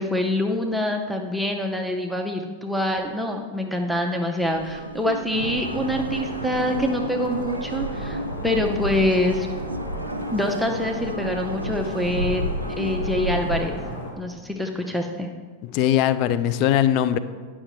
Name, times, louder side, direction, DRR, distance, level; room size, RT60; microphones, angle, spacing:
voice 1, 0.0-9.5 10.3-12.5 12.8-13.8 14.2-15.3, left 1 dB, ahead, 1 dB, 0.6 m, -25 dB
sound 1, 4.4-13.6, right 1 dB, 80° right, 0.3 m, -32 dB
sound 2, 5.3-14.1, equal, 65° left, 1.6 m, -34 dB
voice 2, 15.7-17.2, left 11 dB, 40° left, 13 dB, 0.4 m, -20 dB
9.8 x 5.7 x 3.0 m, 1.5 s
figure-of-eight pair, 90°, 0 cm